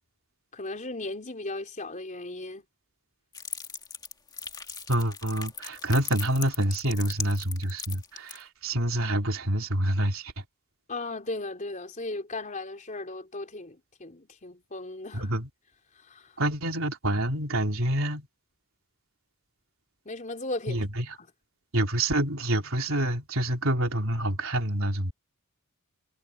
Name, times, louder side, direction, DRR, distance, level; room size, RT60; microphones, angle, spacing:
voice 1, 0.5-2.7 10.9-15.3 15.9-16.4 20.1-20.8, left 2 dB, 35° left, 4.1 m, -36 dB
sound 1, 3.3-8.4, left 5 dB, 20° left, 1.8 m, -38 dB
voice 2, 4.9-10.3 15.1-15.5 16.4-18.3 20.7-21.1 21.7-25.1, right 1 dB, 65° right, 3.8 m, -27 dB
head